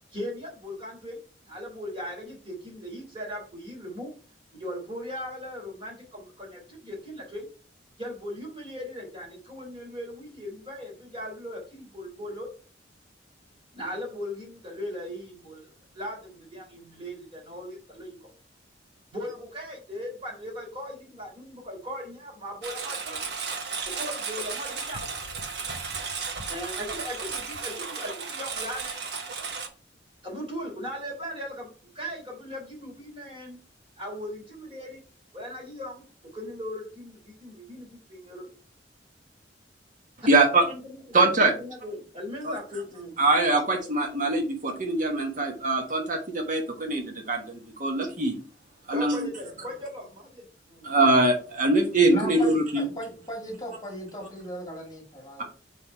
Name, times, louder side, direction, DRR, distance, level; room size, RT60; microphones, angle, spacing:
voice 1, 0.1-1.2 1.5-4.1 4.5-7.5 8.0-12.5 13.7-15.7 15.9-18.3 19.1-23.2 23.8-25.0 26.5-28.9 30.2-33.6 34.0-35.0 35.3-36.0 36.3-38.5 40.4-41.2 41.5-43.1 43.8-43.9 48.9-50.9, equal, 30° right, -3 dB, 3.4 m, -38 dB
Engine, 22.6-29.7, right 5 dB, 65° right, 1.2 m, -34 dB
voice 2, 40.3-40.6 41.1-41.5 42.4-42.5 43.2-48.4 48.9-49.3 50.8-52.8, right 2 dB, 45° right, 2 dB, 1.3 m, -23 dB
voice 3, 52.1-55.4, equal, 20° left, 0 dB, 2.1 m, -37 dB
5.7 x 4.9 x 4.6 m, 0.37 s
head